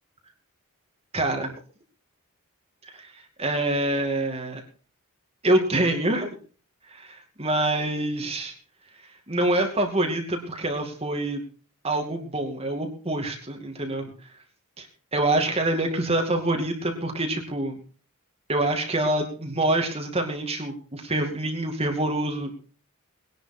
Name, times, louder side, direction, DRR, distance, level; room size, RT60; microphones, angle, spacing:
voice 1, 1.1-1.5 2.8-3.1 3.4-4.6 5.4-6.3 6.9-8.5 9.3-11.4 11.8-14.1 15.1-17.8 18.5-22.5, right 1 dB, 25° right, 3 dB, 2.5 m, -26 dB
20.0 x 11.0 x 4.4 m, 0.38 s
head